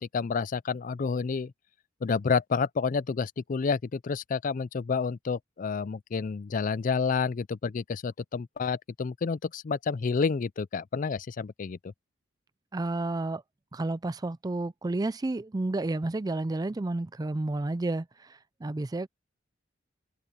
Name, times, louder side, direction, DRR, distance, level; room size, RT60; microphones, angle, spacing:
voice 1, 0.0-1.5 2.0-11.8, left 5 dB, 45° left, 0.4 m, -29 dB
voice 2, 12.7-13.4 13.7-19.1, right 2 dB, 20° right, 0.4 m, -31 dB
head